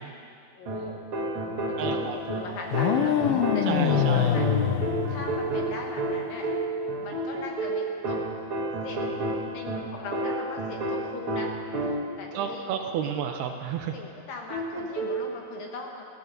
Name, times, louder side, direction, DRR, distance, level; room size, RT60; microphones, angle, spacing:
voice 1, 0.5-1.1 1.4-4.5 5.1-6.5 7.0-8.3 8.8-9.2 9.5-11.5 11.9-12.7 13.0-13.2 13.9-16.1, left 3 dB, 65° left, 1 dB, 2.5 m, -40 dB
sound 1, 0.7-12.3 14.5-15.3, right 2 dB, 45° right, 2.1 m, -30 dB
voice 2, 1.8-2.2 3.7-4.3 12.3-13.9, right 8 dB, 75° right, 5 dB, 2.6 m, -31 dB
sound 2, 2.7-5.8, left 9 dB, 90° left, 2.0 m, -25 dB
15.0 x 14.5 x 6.7 m, 2.4 s
omnidirectional pair, 5.0 m